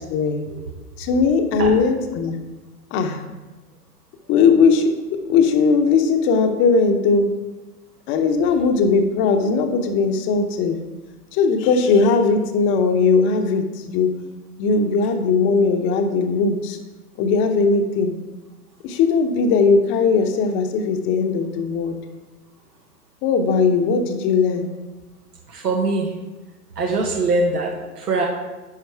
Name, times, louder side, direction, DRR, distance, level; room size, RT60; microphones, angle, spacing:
voice 1, 0.1-0.4 1.0-2.4 2.9-3.2 4.3-4.9 5.3-7.3 8.1-10.8 11.3-14.1 14.6-16.8 17.2-18.1 18.8-21.9 23.2-24.7, left 4 dB, 25° left, 5 dB, 0.8 m, -18 dB
voice 2, 25.5-26.1 26.8-28.2, right 3 dB, 80° right, 1 dB, 1.4 m, -22 dB
10.5 x 5.1 x 4.6 m, 1.2 s
hypercardioid pair, 125°, 46 cm